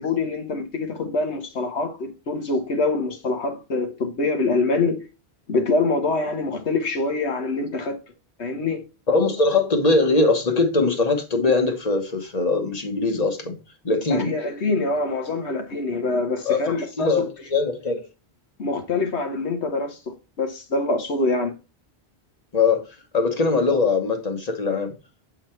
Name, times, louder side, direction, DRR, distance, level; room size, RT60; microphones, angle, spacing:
voice 1, 0.0-5.1 5.5-8.0 8.4-8.8 14.1-17.3 18.6-21.5, left 3 dB, 85° left, 1.6 m, -25 dB
voice 2, 9.1-13.6 13.8-14.3 16.4-18.0 22.5-22.8 23.1-24.9, left 3 dB, 40° left, 1.2 m, -21 dB
7.8 x 3.9 x 4.4 m
omnidirectional pair, 1.1 m